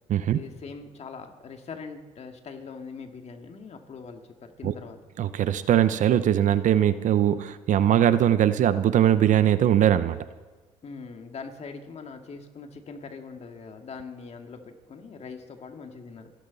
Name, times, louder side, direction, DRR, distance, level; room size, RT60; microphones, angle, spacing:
voice 1, 0.3-5.0 10.8-16.3, left 5 dB, 50° left, 5 dB, 2.2 m, -42 dB
voice 2, 5.2-10.2, right 10 dB, 60° right, 14 dB, 0.8 m, -21 dB
28.0 x 12.0 x 4.1 m, 1.3 s
supercardioid pair, 70°, 14 cm